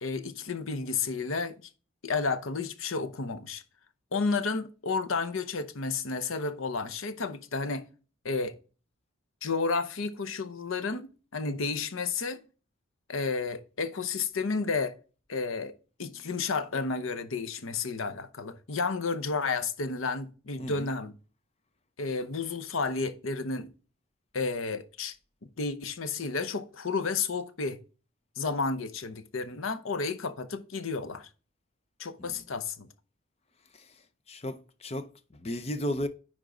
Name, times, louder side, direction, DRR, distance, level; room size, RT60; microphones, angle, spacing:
voice 1, 0.0-1.5 2.0-3.6 4.1-7.9 8.2-8.5 9.4-12.4 13.1-14.9 15.3-21.1 22.0-23.7 24.3-25.2 25.6-27.8 28.4-31.3 32.0-32.8, left 4 dB, 80° left, 0.8 m, -31 dB
voice 2, 20.6-20.9 32.2-32.4 33.7-34.0 34.3-36.1, equal, 30° left, 0.6 m, -35 dB
10.0 x 3.7 x 3.8 m
head